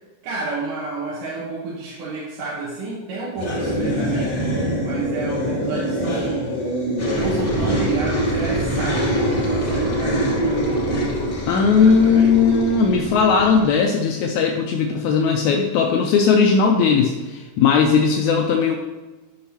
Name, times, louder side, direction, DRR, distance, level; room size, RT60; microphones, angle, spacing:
voice 1, 0.2-4.4 4.8-6.6 7.1-12.4, right 3 dB, 75° right, -6 dB, 2.8 m, -31 dB
sound 1, 3.4-13.7, right 1 dB, 40° left, 1.0 m, -23 dB
voice 2, 11.5-18.8, left 5 dB, 80° left, 2 dB, 1.7 m, -17 dB
11.5 x 5.7 x 2.9 m, 1.2 s
omnidirectional pair, 3.8 m